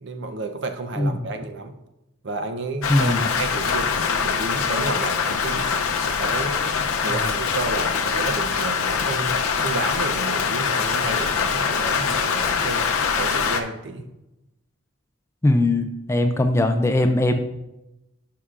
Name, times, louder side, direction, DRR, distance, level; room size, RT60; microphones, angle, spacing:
voice 1, 0.0-1.8 2.2-5.7 6.0-14.1, right 3 dB, 55° right, 7 dB, 0.6 m, -31 dB
voice 2, 1.0-1.3 2.9-3.2 7.1-7.3 15.4-17.4, left 1 dB, 10° left, 6 dB, 0.3 m, -20 dB
Rain, 2.8-13.6, left 6 dB, 80° left, 0.6 m, -23 dB
11.0 x 5.6 x 2.4 m, 0.95 s
head